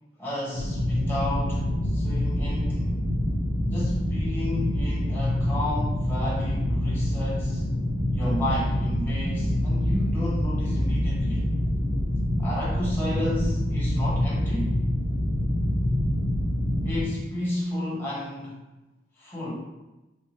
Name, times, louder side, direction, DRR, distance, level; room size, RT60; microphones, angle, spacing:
voice 1, 0.2-2.9 3.7-7.6 8.1-11.5 12.4-14.8 16.8-18.6 19.2-19.5, left 1 dB, 15° left, -6 dB, 1.1 m, -32 dB
sound 1, 0.5-17.1, left 1 dB, 35° left, 1.1 m, -26 dB
4.5 x 2.3 x 3.1 m, 1.0 s
head